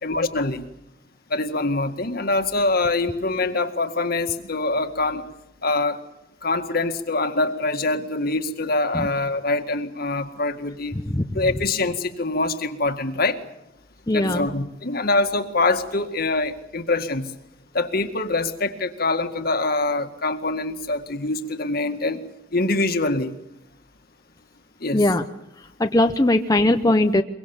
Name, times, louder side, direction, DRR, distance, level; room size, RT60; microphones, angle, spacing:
voice 1, 0.0-0.7 1.3-5.3 5.6-6.0 6.4-11.0 11.3-13.4 14.1-17.3 17.7-22.2 22.5-23.3 24.8-25.0, left 2 dB, 55° left, 8 dB, 2.0 m, -24 dB
voice 2, 10.9-11.4 14.1-14.5 24.9-25.3 25.8-27.2, left 1 dB, 20° left, 6 dB, 0.8 m, -20 dB
23.5 x 23.0 x 7.2 m, 0.85 s
head